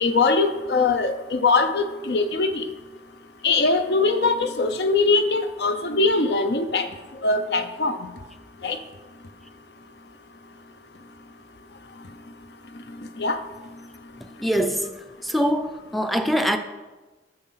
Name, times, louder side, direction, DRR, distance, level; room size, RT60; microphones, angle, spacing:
voice 1, 0.0-2.7 3.4-6.9 7.2-8.0 8.6-8.8 13.2-13.4, left 3 dB, 65° left, 9 dB, 0.7 m, -21 dB
voice 2, 14.4-14.9 15.2-16.6, equal, ahead, 7 dB, 0.5 m, -23 dB
8.6 x 6.3 x 5.7 m, 1.2 s
head